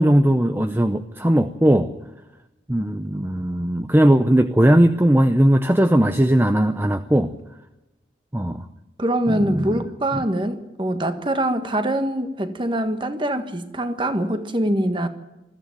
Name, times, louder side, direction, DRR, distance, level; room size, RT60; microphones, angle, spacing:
voice 1, 0.0-1.9 2.7-7.3 8.3-8.6 9.3-9.6 10.1-10.2, right 1 dB, 10° right, 0.6 m, -18 dB
voice 2, 9.0-15.1, right 1 dB, 25° right, 1.5 m, -24 dB
20.5 x 14.5 x 9.0 m
head